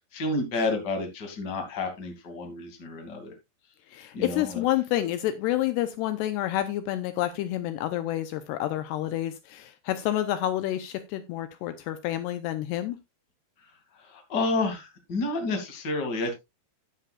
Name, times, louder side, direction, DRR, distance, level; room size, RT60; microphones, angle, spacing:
voice 1, 0.1-3.3 4.1-4.6 13.6-16.3, left 2 dB, 30° left, 4 dB, 2.0 m, -30 dB
voice 2, 3.9-13.0, left 13 dB, 80° left, 10 dB, 2.6 m, -29 dB
11.0 x 10.0 x 2.4 m, 0.22 s
omnidirectional pair, 5.1 m